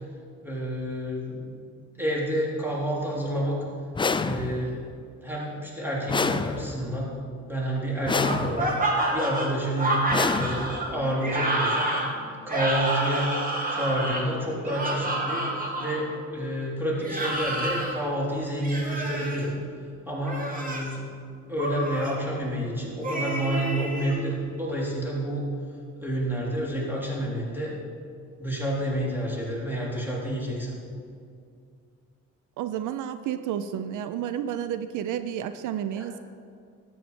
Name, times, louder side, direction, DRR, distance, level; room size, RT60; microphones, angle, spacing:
voice 1, 0.4-1.5 2.0-3.6 4.2-4.8 5.2-7.1 7.5-8.7 9.1-9.9 10.3-11.9 12.5-13.3 13.7-15.5 15.8-19.6 20.1-21.1 21.5-25.5 26.0-27.7 28.4-30.7 35.9-36.1, right 1 dB, 5° right, -4 dB, 3.6 m, -29 dB
sound 1, 3.9-4.8 6.1-7.0 8.0-8.9 10.1-11.0, left 4 dB, 15° left, 0.4 m, -28 dB
sound 2, 8.2-16.0 17.0-17.9 18.6-19.4 20.2-20.9 21.6-22.1 23.0-24.2, right 1 dB, 30° right, 2.3 m, -29 dB
voice 2, 32.6-36.2, right 10 dB, 80° right, 11 dB, 0.6 m, -31 dB
13.0 x 8.7 x 5.1 m, 2.3 s
cardioid pair, 90°, 30 cm